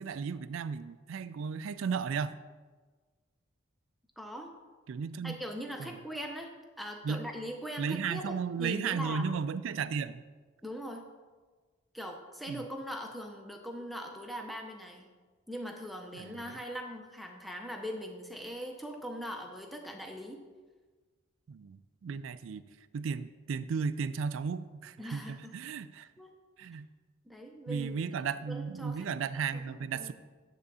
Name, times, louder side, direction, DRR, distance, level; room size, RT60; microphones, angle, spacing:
voice 1, 0.0-2.4 4.9-5.4 5.8-5.9 7.0-7.3 7.8-10.2 12.5-12.6 16.1-16.4 21.5-22.7 22.9-26.1 26.6-26.9 27.7-30.1, right 6 dB, 70° right, 14 dB, 0.3 m, -35 dB
voice 2, 4.2-4.5 5.2-6.5 6.8-9.3 10.6-11.1 11.9-15.1 15.5-20.4 25.0-25.5 26.2-26.3 27.2-28.0 28.5-29.1 29.4-29.6 29.9-30.1, equal, ahead, 2 dB, 0.7 m, -41 dB
9.6 x 3.8 x 6.9 m, 1.4 s
head